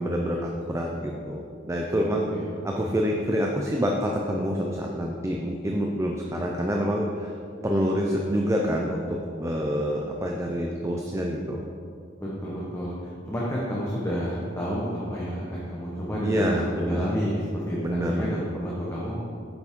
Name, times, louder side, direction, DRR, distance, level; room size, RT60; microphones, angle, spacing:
voice 1, 0.0-2.3 2.6-7.3 7.6-11.6 16.2-17.1 17.8-18.4, equal, 15° right, 0 dB, 0.5 m, -27 dB
voice 2, 2.3-2.8 12.2-19.2, equal, 15° left, -6 dB, 1.0 m, -30 dB
8.1 x 7.0 x 3.6 m, 2.5 s
head